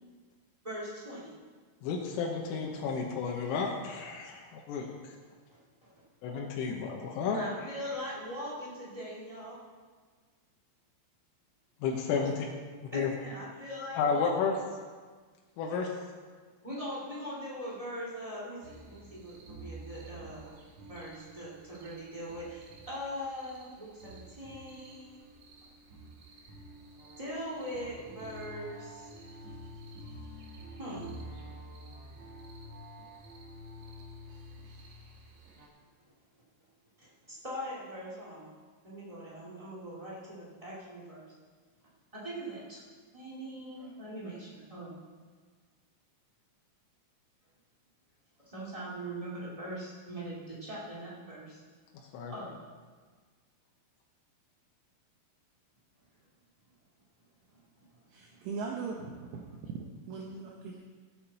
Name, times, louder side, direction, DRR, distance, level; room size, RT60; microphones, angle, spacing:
voice 1, 0.6-1.3 5.5-5.6 7.3-9.6 12.9-14.3 16.6-20.5 20.9-25.2 27.2-29.1 30.8-31.1 37.0-38.5 38.8-41.3 42.1-42.8 43.1-45.0 48.4-51.6 52.3-52.5 57.5-57.6 58.2-58.3, equal, 30° right, -7 dB, 0.6 m, -41 dB
voice 2, 1.8-4.9 6.2-7.4 11.8-12.3 12.9-13.1 14.0-14.6 15.6-15.9 52.1-52.3, left 5 dB, 85° left, -1 dB, 3.7 m, -31 dB
sound 1, 18.6-35.7, equal, 60° right, 2.1 m, -49 dB
voice 3, 58.1-59.4 59.7-60.8, right 4 dB, 75° right, 0 dB, 2.8 m, -39 dB
16.5 x 8.6 x 4.2 m, 1.5 s
omnidirectional pair, 5.7 m